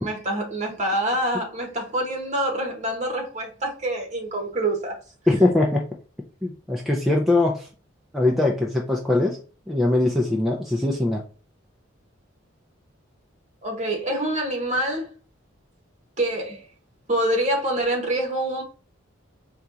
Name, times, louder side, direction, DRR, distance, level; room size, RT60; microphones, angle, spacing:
voice 1, 0.0-5.0 13.6-15.1 16.2-16.7 17.1-18.6, right 1 dB, 35° right, 1.1 m, -26 dB
voice 2, 5.3-5.8 6.4-7.7 8.1-9.4 9.7-11.2, left 2 dB, ahead, 0.4 m, -21 dB
4.3 x 2.4 x 3.8 m
head